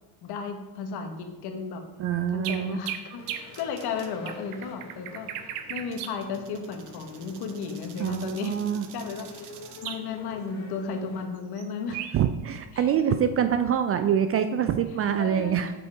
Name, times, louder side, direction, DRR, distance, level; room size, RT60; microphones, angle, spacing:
voice 1, 0.2-1.8 2.3-8.6 8.9-12.1 12.7-13.2 15.2-15.6, left 5 dB, 55° left, 5 dB, 1.3 m, -34 dB
voice 2, 2.0-2.8 8.0-8.9 12.1-15.7, right 9 dB, 35° right, 9 dB, 0.4 m, -25 dB
sound 1, 2.0-10.0 11.6-11.7 11.9-12.1, right 10 dB, 75° right, 0.8 m, -39 dB
sound 2, 3.2-11.3, left 2 dB, 35° left, 1.6 m, -47 dB
6.9 x 5.3 x 4.7 m, 1.1 s
hypercardioid pair, 75°, 46 cm